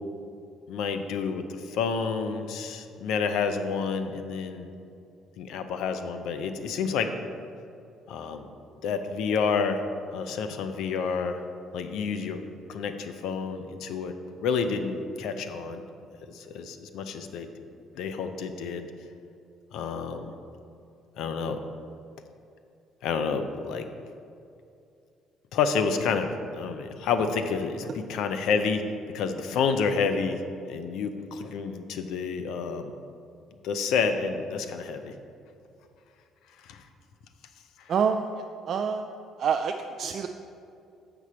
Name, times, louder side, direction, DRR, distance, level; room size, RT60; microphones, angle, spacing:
voice 1, 0.7-4.7 5.4-7.1 8.1-8.5 8.8-9.8 10.1-11.4 11.7-12.4 12.7-15.8 16.3-17.5 17.9-18.9 19.7-20.3 21.2-21.6 23.0-23.9 25.5-28.8 29.1-30.4 30.7-32.9 33.6-35.1 36.6-36.8 37.8-37.9, left 5 dB, 70° left, 8 dB, 0.5 m, -29 dB
voice 2, 37.9-38.2 38.7-39.1 39.4-40.3, right 6 dB, 55° right, 5 dB, 0.3 m, -26 dB
6.9 x 5.9 x 4.3 m, 2.5 s
hypercardioid pair, 55°, 0 cm